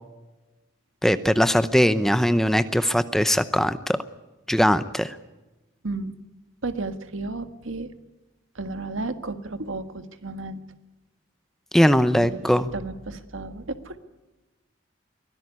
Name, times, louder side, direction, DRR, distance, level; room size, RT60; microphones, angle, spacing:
voice 1, 1.0-4.0 4.5-5.2 11.7-12.7, equal, ahead, 12 dB, 0.7 m, -20 dB
voice 2, 6.6-7.9 8.5-10.6 12.1-14.0, right 2 dB, 85° right, 9 dB, 1.7 m, -33 dB
23.5 x 16.5 x 9.5 m, 1.1 s
head